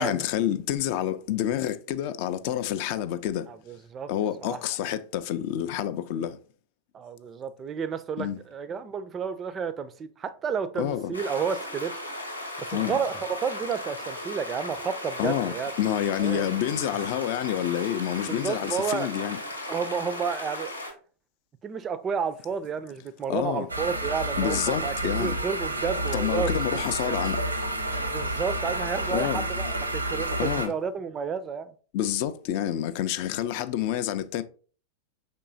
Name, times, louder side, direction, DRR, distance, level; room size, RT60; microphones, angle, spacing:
voice 1, 0.0-3.5 4.1-6.4 8.2-8.4 10.8-11.1 12.7-13.0 15.2-19.4 23.3-23.7 24.4-25.4 26.1-27.4 29.1-29.4 30.4-30.7 31.9-34.4, left 11 dB, 45° left, 0.4 m, -28 dB
voice 2, 3.5-4.1 4.4-4.6 6.9-11.9 12.6-15.7 16.2-16.4 18.3-19.1 19.7-20.7 21.6-26.5 27.1-27.2 27.9-31.7, right 6 dB, 25° right, 0.4 m, -31 dB
sound 1, 11.1-20.9, left 1 dB, 90° left, 0.9 m, -37 dB
sound 2, 23.7-30.7, right 1 dB, 80° right, 0.6 m, -29 dB
5.3 x 3.7 x 2.5 m
figure-of-eight pair, 90°, 0 cm